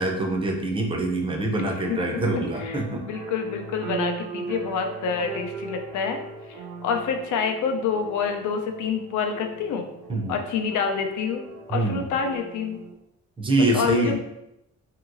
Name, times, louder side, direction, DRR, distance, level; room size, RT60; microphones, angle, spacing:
voice 1, 0.0-3.0 10.1-10.4 11.7-12.1 13.4-14.2, right 2 dB, 20° right, 1 dB, 0.5 m, -25 dB
sound 1, 1.7-12.9, right 3 dB, 75° right, 0.5 m, -38 dB
voice 2, 1.9-2.2 2.6-6.2 6.5-9.9 10.3-12.8 13.7-14.2, left 6 dB, 75° left, 4 dB, 0.5 m, -27 dB
2.9 x 2.8 x 2.5 m, 0.87 s
cardioid pair, 135°, 30 cm